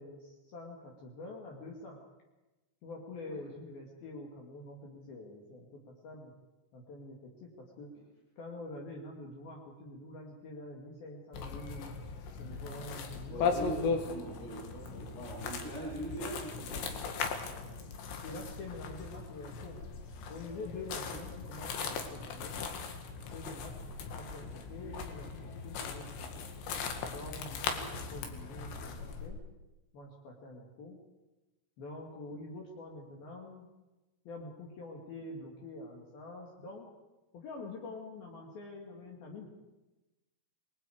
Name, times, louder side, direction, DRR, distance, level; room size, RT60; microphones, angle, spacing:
voice 1, 0.0-2.0 2.8-6.3 6.7-7.9 8.4-12.0 12.4-14.0 14.9-15.1 17.5-17.7 18.2-19.8 20.3-22.6 23.2-23.7 24.1-26.1 26.4-26.5 27.1-29.4 29.9-31.0 31.8-33.7 34.3-36.9 37.3-39.5, left 2 dB, 60° left, -1 dB, 3.7 m, -46 dB
sound 1, 11.3-29.3, left 5 dB, 75° left, 4.0 m, -38 dB
voice 2, 13.3-17.0 21.0-21.2 27.7-27.9, right 2 dB, 25° left, -4 dB, 6.7 m, -42 dB
28.5 x 21.0 x 4.9 m, 1.1 s
omnidirectional pair, 5.2 m